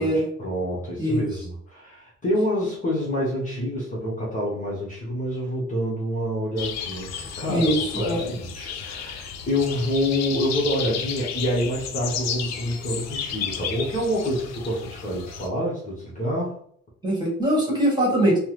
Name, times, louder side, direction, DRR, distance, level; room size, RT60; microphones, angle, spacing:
voice 1, 0.0-16.6, equal, 25° left, -5 dB, 1.0 m, -27 dB
voice 2, 1.0-1.3 7.5-8.3 17.0-18.4, right 1 dB, 15° right, -4 dB, 1.4 m, -22 dB
sound 1, 6.6-15.5, left 7 dB, 65° left, 0.5 m, -33 dB
3.3 x 2.1 x 3.0 m, 0.62 s
cardioid pair, 120°, 29 cm